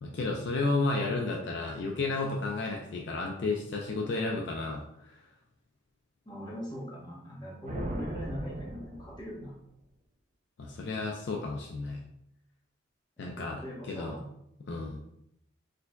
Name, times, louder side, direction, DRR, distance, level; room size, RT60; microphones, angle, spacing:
voice 1, 0.0-5.2 10.6-12.0 13.2-13.6 13.9-14.2 14.7-15.0, left 3 dB, 60° left, 0 dB, 0.4 m, -32 dB
voice 2, 6.3-9.5 13.4-14.2, equal, 20° left, -5 dB, 0.9 m, -40 dB
sound 1, 7.7-9.6, right 1 dB, 35° right, 0.3 m, -39 dB
4.3 x 2.6 x 2.2 m, 0.78 s
head